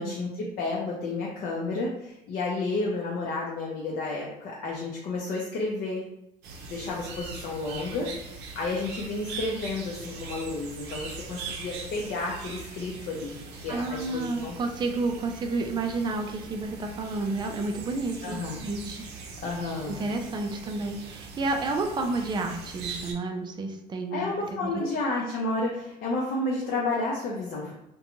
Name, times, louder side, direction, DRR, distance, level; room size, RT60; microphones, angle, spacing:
voice 1, 0.0-6.1 6.6-13.3 13.6-14.6 18.2-18.6 19.4-20.0 24.1-27.7, left 2 dB, 60° left, -3 dB, 0.5 m, -31 dB
sound 1, 6.4-23.1, right 4 dB, 85° right, 0.5 m, -41 dB
voice 2, 13.7-19.1 19.9-24.2 24.5-24.9, right 3 dB, 25° right, 4 dB, 0.4 m, -30 dB
2.5 x 2.2 x 2.9 m, 0.88 s
cardioid pair, 110°, 17 cm